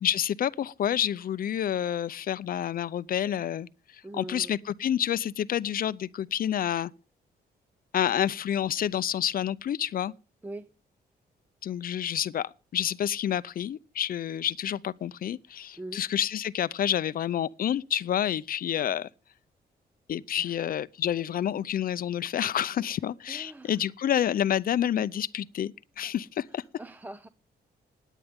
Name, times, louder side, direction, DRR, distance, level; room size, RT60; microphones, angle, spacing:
voice 1, 0.0-3.7 4.1-6.9 7.9-10.1 11.6-19.1 20.1-26.6, left 10 dB, 60° left, 0.5 m, -29 dB
voice 2, 4.0-4.6 10.4-10.7 15.8-16.0 20.4-20.6 23.3-23.8 26.8-27.3, right 2 dB, 10° right, 0.6 m, -42 dB
17.5 x 10.0 x 3.6 m
cardioid pair, 115°, 17 cm